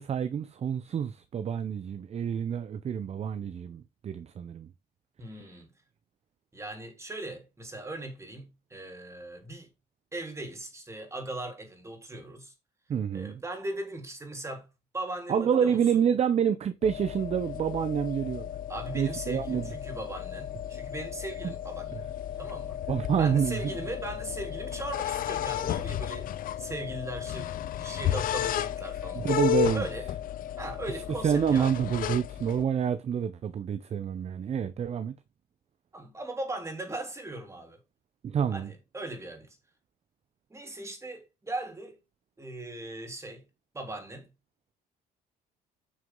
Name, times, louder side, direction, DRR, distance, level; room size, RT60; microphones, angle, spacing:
voice 1, 0.0-4.7 12.9-13.4 15.3-18.5 18.9-19.7 21.4-21.5 21.9-22.0 22.9-23.6 29.1-29.8 31.2-35.1 38.2-38.7, right 8 dB, 40° right, 0.7 m, -28 dB
voice 2, 5.2-5.7 6.5-9.7 10.1-12.5 13.1-14.7 14.9-16.0 18.7-22.1 22.4-22.8 23.2-29.3 29.7-30.1 30.6-31.8 35.9-37.8 38.5-39.6 40.5-42.0 42.4-43.4 43.7-44.3, right 2 dB, 15° right, 3.6 m, -39 dB
sound 1, 16.8-32.6, left 12 dB, 55° left, 0.6 m, -33 dB
9.2 x 6.3 x 3.8 m
cardioid pair, 110°, 17 cm